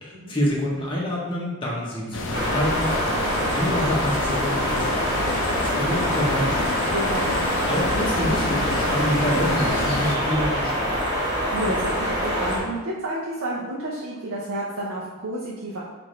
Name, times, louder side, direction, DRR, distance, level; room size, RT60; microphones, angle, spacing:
voice 1, 0.0-5.3 5.5-6.9 7.7-11.0, equal, 20° left, -4 dB, 0.9 m, -27 dB
sound 1, 2.1-10.2, left 2 dB, 55° left, 0.5 m, -30 dB
sound 2, 2.3-12.6, equal, 20° right, 1.1 m, -25 dB
voice 2, 6.9-7.4 11.3-15.8, right 1 dB, 65° right, -4 dB, 0.6 m, -30 dB
5.5 x 2.6 x 3.2 m, 1.2 s
head